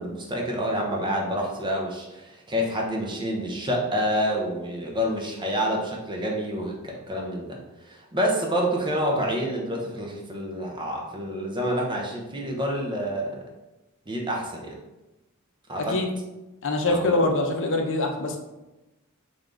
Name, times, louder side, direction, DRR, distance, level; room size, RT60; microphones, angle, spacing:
voice 1, 0.0-7.6 7.8-13.4 14.1-14.7 15.7-15.9 16.9-17.0, equal, 20° right, -1 dB, 0.7 m, -28 dB
voice 2, 15.8-16.1 16.6-18.4, left 2 dB, 55° left, 3 dB, 0.6 m, -24 dB
3.7 x 3.4 x 3.8 m, 1.0 s
head